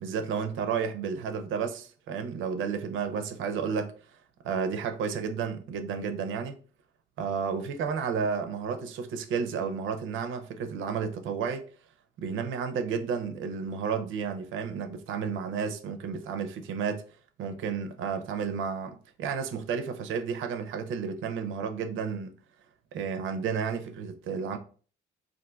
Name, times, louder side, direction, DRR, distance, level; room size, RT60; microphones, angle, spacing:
voice 1, 0.0-3.9 4.4-6.6 7.2-11.6 12.2-17.0 17.4-22.3 22.9-24.6, right 6 dB, 80° right, 0.5 m, -32 dB
3.8 x 2.5 x 2.3 m
cardioid pair, 90°, 20 cm